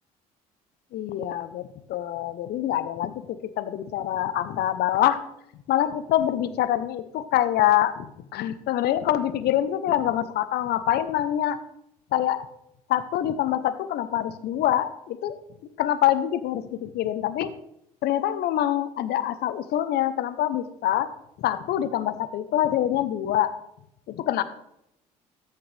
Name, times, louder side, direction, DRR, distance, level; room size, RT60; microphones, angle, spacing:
voice 1, 0.9-5.2 5.7-8.1 8.3-11.6 12.1-12.5 12.9-15.4 15.8-17.5 18.0-21.1 21.4-23.5 24.1-24.4, left 12 dB, 60° left, 13 dB, 0.8 m, -25 dB
14.0 x 6.8 x 3.4 m, 0.79 s
hypercardioid pair, 60°, 19 cm